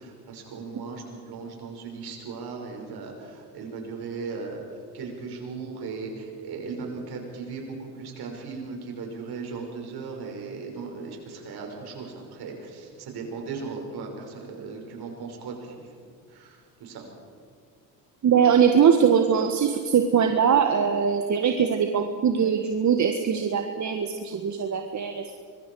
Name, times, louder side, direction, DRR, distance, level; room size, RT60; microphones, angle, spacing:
voice 1, 0.0-15.7 16.3-17.1, right 4 dB, 55° right, 1 dB, 6.1 m, -37 dB
voice 2, 18.2-25.4, right 7 dB, 40° right, 5 dB, 1.7 m, -22 dB
25.0 x 22.5 x 4.9 m, 2.1 s
hypercardioid pair, 70°, 46 cm